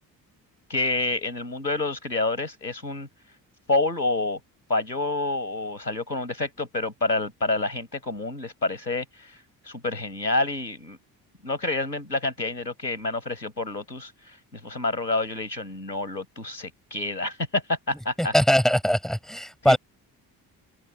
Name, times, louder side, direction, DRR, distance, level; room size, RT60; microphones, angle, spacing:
voice 1, 0.7-3.1 3.7-4.4 4.7-11.0 11.4-18.3 19.6-19.8, left 2 dB, 90° left, 6.4 m, -28 dB
voice 2, 18.2-19.8, equal, ahead, 6.5 m, -21 dB
figure-of-eight pair, 45°, 49 cm